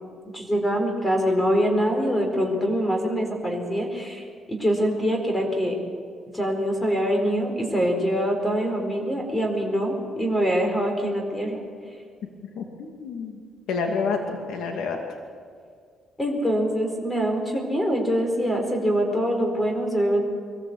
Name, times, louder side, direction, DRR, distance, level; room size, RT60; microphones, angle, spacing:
voice 1, 0.3-5.8 6.3-11.6 16.2-20.2, equal, 15° left, 3 dB, 4.5 m, -24 dB
voice 2, 12.5-13.4 13.7-15.0, left 4 dB, 80° left, 3 dB, 2.4 m, -28 dB
23.0 x 15.0 x 8.1 m, 2.1 s
cardioid pair, 90°, 0 cm